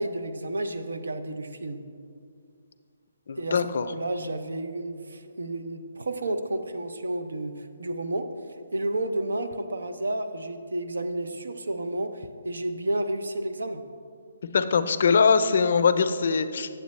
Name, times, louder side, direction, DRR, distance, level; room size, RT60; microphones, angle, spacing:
voice 1, 0.0-1.8 3.4-13.8, right 1 dB, 90° right, 9 dB, 0.6 m, -31 dB
voice 2, 3.3-3.9 14.5-16.7, left 5 dB, 60° left, 10 dB, 0.4 m, -22 dB
8.1 x 7.7 x 3.1 m, 2.3 s
hypercardioid pair, 155°, 0 cm